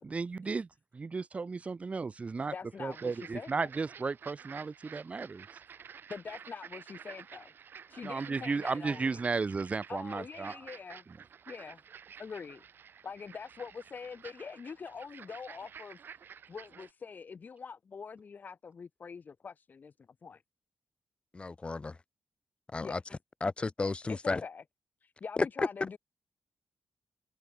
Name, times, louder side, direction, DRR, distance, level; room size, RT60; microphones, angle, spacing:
voice 1, 0.0-2.5 2.8-5.5 8.0-10.5, right 4 dB, 35° right, 0.9 m, -34 dB
voice 2, 2.5-3.7 6.1-7.5 7.9-9.2 9.9-11.0 11.5-11.8 12.2-12.6 13.0-16.0 16.5-19.9 20.2-20.4 22.8-23.0 24.1-24.6 25.0-26.0, left 5 dB, 50° left, 2.4 m, -44 dB
sound 1, 2.9-16.9, right 7 dB, 65° right, 1.6 m, -51 dB
voice 3, 21.3-22.0 22.7-23.0 23.4-24.4 25.4-25.5, left 3 dB, 30° left, 1.1 m, -32 dB
cardioid pair, 95°, 4 cm